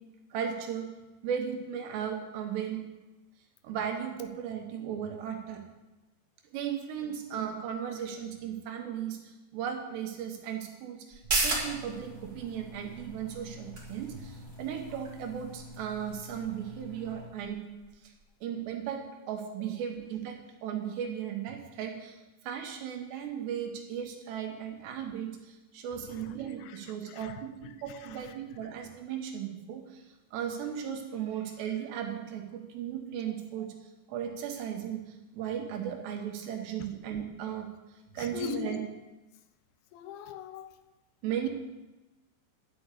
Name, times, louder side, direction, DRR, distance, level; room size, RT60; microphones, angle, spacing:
voice 1, 0.3-0.9 1.2-2.8 3.6-5.6 6.5-17.6 18.0-18.1 18.4-22.2 22.4-30.0 30.3-33.7 34.1-37.7 38.1-38.8 41.2-41.5, right 8 dB, 75° right, 3 dB, 3.3 m, -36 dB
sound 1, 11.1-18.2 18.6-18.7, right 2 dB, 35° right, 1.7 m, -37 dB
Engine, 11.3-17.3, left 1 dB, 25° left, 2.1 m, -48 dB
voice 2, 26.0-27.4 27.9-28.4 38.2-38.8 39.9-40.8, left 9 dB, 85° left, 9 dB, 3.1 m, -42 dB
11.5 x 6.2 x 8.3 m, 1.1 s
omnidirectional pair, 5.2 m